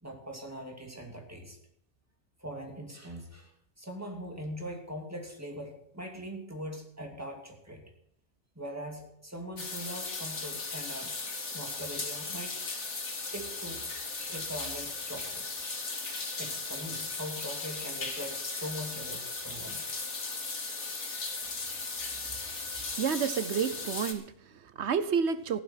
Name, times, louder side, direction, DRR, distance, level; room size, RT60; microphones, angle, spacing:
voice 1, 0.0-1.6 2.4-3.5 3.8-7.8 8.6-12.6 13.2-13.8 14.3-15.5 16.4-19.8 20.3-20.4, equal, 15° right, 2 dB, 2.5 m, -41 dB
sound 1, 9.6-24.1, left 3 dB, 85° left, 2.1 m, -37 dB
voice 2, 23.0-25.6, right 6 dB, 75° right, 14 dB, 1.1 m, -30 dB
15.0 x 11.5 x 5.8 m, 0.72 s
omnidirectional pair, 1.2 m